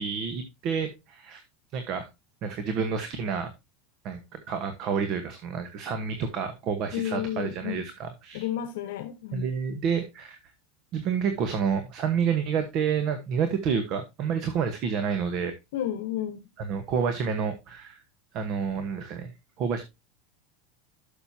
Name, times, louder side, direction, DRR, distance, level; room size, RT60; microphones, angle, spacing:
voice 1, 0.0-1.4 1.7-2.1 2.4-3.5 4.0-8.4 9.3-10.4 10.9-15.5 16.6-18.0 18.3-19.3 19.6-19.8, right 6 dB, 40° right, 1.1 m, -29 dB
voice 2, 6.9-7.8 8.3-9.5 15.7-16.5, left 11 dB, 75° left, 1.0 m, -32 dB
12.0 x 6.5 x 2.8 m
supercardioid pair, 155°, 0 cm